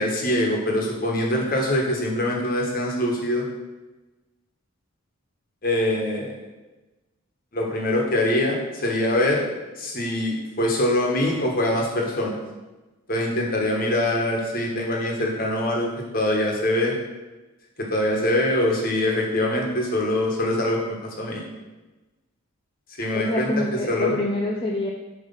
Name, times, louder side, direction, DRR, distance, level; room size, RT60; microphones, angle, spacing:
voice 1, 0.0-3.5 5.6-6.3 7.5-9.4 9.8-12.4 13.1-17.0 17.8-21.4 23.0-23.5 23.9-24.1, left 1 dB, 40° left, -1 dB, 1.3 m, -23 dB
voice 2, 23.1-24.9, left 1 dB, 25° left, -1 dB, 0.5 m, -26 dB
7.2 x 3.3 x 5.6 m, 1.1 s
head